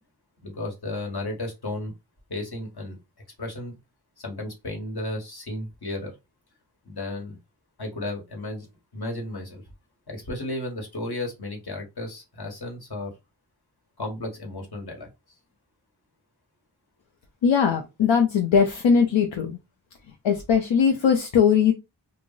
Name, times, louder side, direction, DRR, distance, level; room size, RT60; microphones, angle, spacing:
voice 1, 0.4-1.9 2.3-3.0 3.4-3.8 4.2-6.1 6.8-7.4 7.8-8.7 8.9-9.6 10.1-13.1 14.0-15.1, left 2 dB, 55° left, 1.3 m, -33 dB
voice 2, 17.4-19.6 20.2-21.7, left 6 dB, 75° left, 0.6 m, -20 dB
2.3 x 2.0 x 3.8 m
cardioid pair, 40°, 46 cm